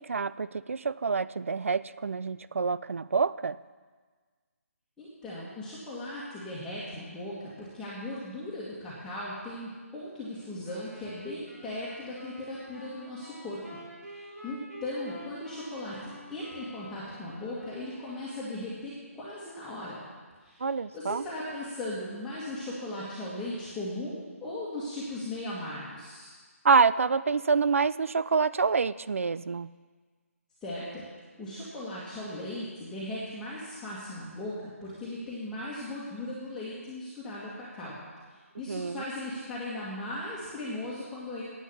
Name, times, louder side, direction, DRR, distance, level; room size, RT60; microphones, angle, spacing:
voice 1, 0.0-3.6 20.6-21.2 26.6-29.7 38.7-39.0, right 5 dB, 60° right, 17 dB, 0.4 m, -27 dB
voice 2, 5.0-13.6 14.1-20.0 20.4-20.7 20.9-26.3 30.6-31.0 31.4-38.0 38.3-41.4, left 1 dB, 5° left, -10 dB, 1.8 m, -38 dB
sound 1, 10.6-18.6, equal, 85° right, 4.6 m, -49 dB
10.5 x 8.8 x 6.9 m, 1.5 s
figure-of-eight pair, 145°, 8 cm